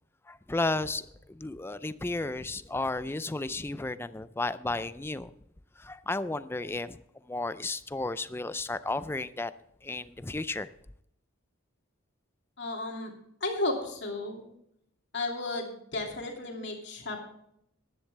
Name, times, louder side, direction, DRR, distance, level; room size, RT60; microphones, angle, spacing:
voice 1, 0.3-5.3 5.8-7.0 7.3-9.5 9.8-10.7, left 2 dB, 10° left, 0.4 m, -33 dB
voice 2, 12.6-13.1 13.4-14.5 15.1-17.2, left 2 dB, 55° left, 2.7 m, -33 dB
14.5 x 11.0 x 3.3 m
head